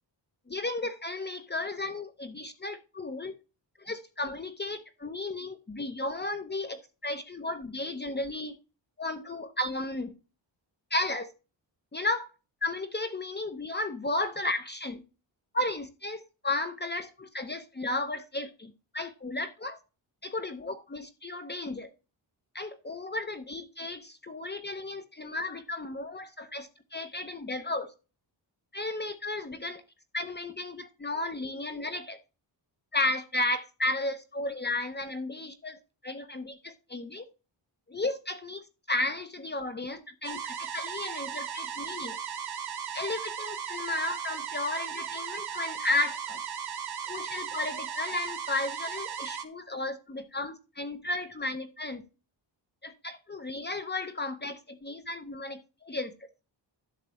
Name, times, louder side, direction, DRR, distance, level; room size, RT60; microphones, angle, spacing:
voice 1, 0.5-3.4 3.8-8.6 9.0-10.1 10.9-11.3 11.9-12.3 12.6-15.0 15.5-19.8 20.2-21.9 22.5-27.9 28.7-29.8 30.1-32.2 32.9-37.2 37.9-42.2 42.9-46.4 47.1-52.0 52.8-56.1, left 2 dB, 20° left, 8 dB, 0.8 m, -34 dB
sound 1, 40.2-49.5, right 8 dB, 55° right, 1.4 m, -36 dB
11.5 x 7.2 x 3.1 m, 0.31 s
wide cardioid pair, 170°, 46 cm